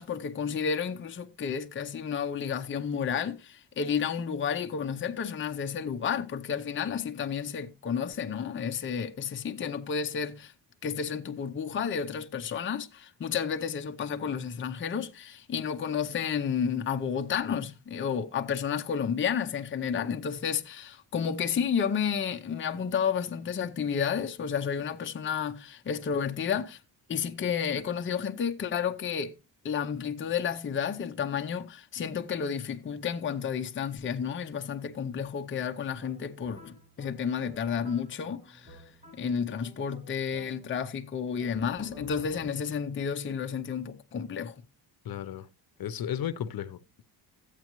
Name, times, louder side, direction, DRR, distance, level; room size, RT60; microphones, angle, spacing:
voice 1, 0.0-10.5 10.8-26.8 27.1-29.3 29.6-38.8 39.1-44.6, left 7 dB, 30° left, 0.6 m, -31 dB
sound 1, 36.0-41.0 41.4-42.9, right 1 dB, 15° right, 3.0 m, -52 dB
voice 2, 45.0-45.5 45.8-47.0, left 10 dB, 60° left, 0.8 m, -34 dB
13.5 x 8.2 x 3.0 m
cardioid pair, 145°, 40 cm